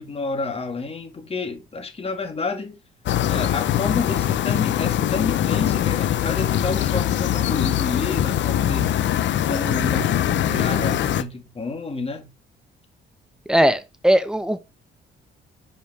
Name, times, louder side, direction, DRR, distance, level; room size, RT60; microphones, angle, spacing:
voice 1, 0.0-2.8 3.3-12.3, left 3 dB, 30° left, 1.9 m, -30 dB
sound 1, 3.1-11.2, left 11 dB, 65° left, 0.7 m, -22 dB
voice 2, 13.5-14.6, equal, 5° right, 1.0 m, -19 dB
5.2 x 5.1 x 5.0 m
cardioid pair, 90°, 20 cm